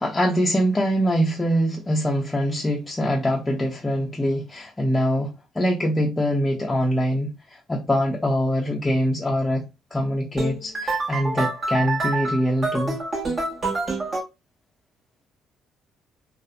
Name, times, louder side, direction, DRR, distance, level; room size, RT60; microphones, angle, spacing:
voice 1, 0.0-9.6 9.9-13.0, equal, 15° left, 0.5 m, -23 dB
sound 1, 10.4-14.2, right 2 dB, 40° right, 1.1 m, -27 dB
2.6 x 2.1 x 2.3 m
cardioid pair, 90°, 0 cm